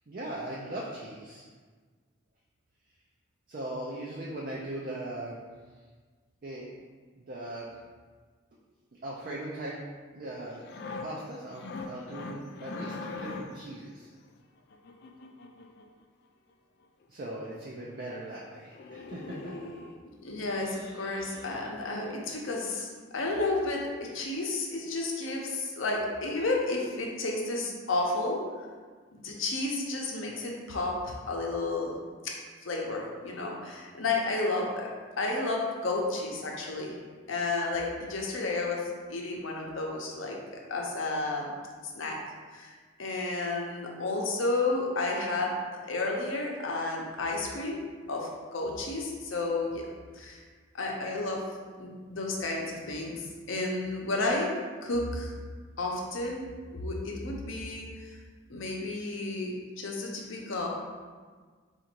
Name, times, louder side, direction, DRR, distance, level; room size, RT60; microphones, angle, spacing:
voice 1, 0.1-1.4 3.5-5.4 6.4-6.8 7.3-7.7 9.0-9.8 10.1-10.7 11.0-14.1 17.1-19.5, right 1 dB, 45° right, -4 dB, 0.4 m, -39 dB
sound 1, 10.5-13.7 14.7-15.9 17.0-17.1 17.4-17.5 17.8-18.0 18.3-18.5 18.7-20.0 20.5-22.1 22.5-22.7, left 3 dB, 50° left, 0.3 m, -42 dB
voice 2, 20.2-28.7 29.1-31.9 32.2-32.3 32.6-34.9 35.2-36.9 37.3-41.5 41.9-42.2 42.5-42.7 43.0-45.6 45.8-47.8 48.1-49.9 50.1-50.4 50.7-51.4 51.8-54.5 54.8-55.4 55.8-58.2 58.5-60.7, left 2 dB, 75° left, -1 dB, 0.7 m, -32 dB
3.8 x 2.5 x 4.4 m, 1.5 s
head